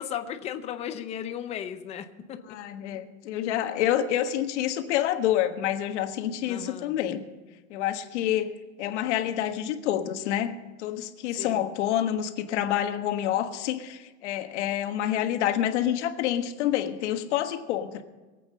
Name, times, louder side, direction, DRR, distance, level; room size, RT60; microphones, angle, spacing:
voice 1, 0.0-2.6 6.5-6.9 11.3-11.6, left 9 dB, 15° left, 8 dB, 0.6 m, -36 dB
voice 2, 2.5-7.2 7.7-10.5 10.8-18.0, left 11 dB, 60° left, 7 dB, 1.5 m, -28 dB
23.0 x 8.5 x 5.5 m, 1.2 s
supercardioid pair, 165°, 40 cm